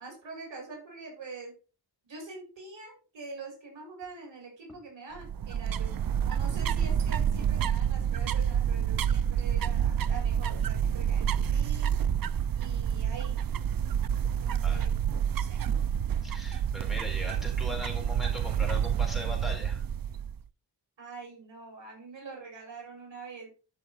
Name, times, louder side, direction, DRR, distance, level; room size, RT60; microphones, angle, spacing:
voice 1, 0.0-1.5 2.0-5.9 6.2-11.9 12.6-13.4 14.4-14.9 15.2-15.6 21.0-23.5, right 4 dB, 90° right, 0 dB, 5.6 m, -45 dB
sound 1, 5.2-20.4, right 8 dB, 55° right, 0.5 m, -28 dB
voice 2, 16.2-19.8, left 1 dB, ahead, 0 dB, 4.4 m, -39 dB
12.5 x 6.4 x 4.0 m, 0.34 s
wide cardioid pair, 140°, 43 cm